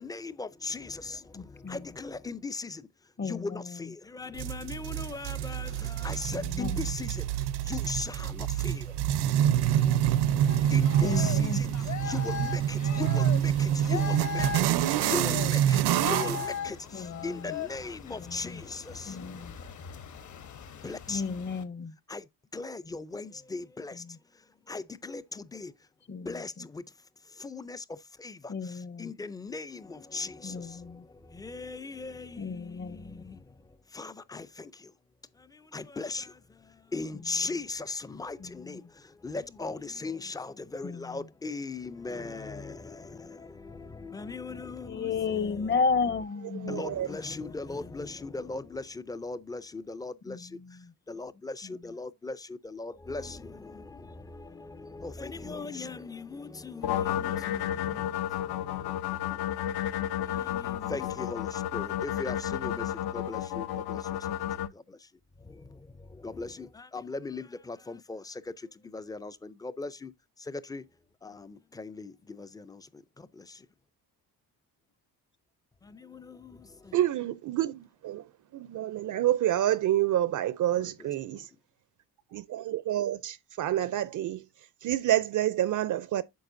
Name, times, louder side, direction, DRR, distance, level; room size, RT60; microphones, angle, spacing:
voice 1, 0.0-19.5 20.8-21.2 22.1-25.9 26.3-26.9 27.2-28.5 29.0-34.9 35.3-45.7 46.7-50.8 51.1-59.5 60.2-65.1 65.4-70.9 71.2-73.7 75.8-77.0 80.8-81.4, left 3 dB, 10° left, 0.4 m, -39 dB
voice 2, 1.3-2.0 3.2-3.9 6.3-7.0 11.0-11.8 15.9-16.4 16.9-17.6 18.1-18.6 19.0-19.6 21.1-22.0 23.9-24.2 26.1-26.7 28.5-29.1 30.4-31.1 32.4-33.3 37.1-37.3 38.4-38.9 40.8-41.3 44.9-46.9 50.3-50.9 51.6-51.9 55.4-56.0, left 5 dB, 30° left, 0.7 m, -34 dB
sound 1, 4.4-16.5, right 11 dB, 90° right, 0.8 m, -27 dB
sound 2, 10.5-21.6, left 9 dB, 50° left, 1.1 m, -39 dB
voice 3, 46.7-47.1 76.9-78.2 78.5-81.5 82.3-84.5 84.8-86.2, right 12 dB, 55° right, 0.5 m, -28 dB
sound 3, 56.8-64.7, left 11 dB, 75° left, 0.8 m, -32 dB
9.3 x 6.6 x 2.5 m
cardioid pair, 155°, 38 cm